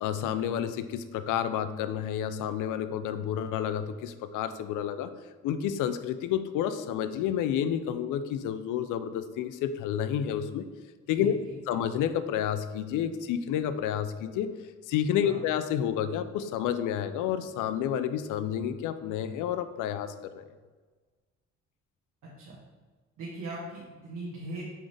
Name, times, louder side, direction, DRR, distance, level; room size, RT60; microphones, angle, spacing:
voice 1, 0.0-5.1 5.4-10.7 11.1-11.4 11.7-14.5 14.9-20.5, left 9 dB, 90° left, 11 dB, 0.5 m, -30 dB
voice 2, 11.2-11.5 15.2-15.4 22.2-22.6 23.2-24.6, right 2 dB, 75° right, -6 dB, 1.5 m, -40 dB
7.5 x 4.0 x 3.3 m, 1.4 s
cardioid pair, 90°, 30 cm